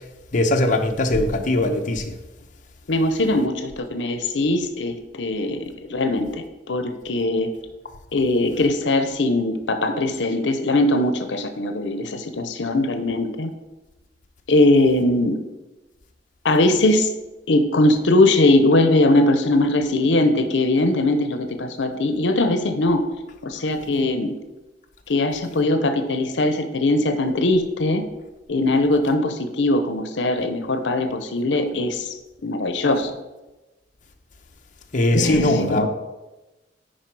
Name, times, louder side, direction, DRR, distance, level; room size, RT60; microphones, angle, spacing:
voice 1, 0.3-2.1 34.9-35.9, left 1 dB, 45° left, 3 dB, 0.9 m, -20 dB
voice 2, 2.9-7.5 8.1-13.5 14.5-15.4 16.4-17.1 17.5-23.0 23.4-24.3 25.1-28.0 28.5-33.1 35.1-35.9, left 2 dB, 85° left, 8 dB, 0.7 m, -20 dB
10.5 x 4.5 x 4.7 m, 1.1 s
head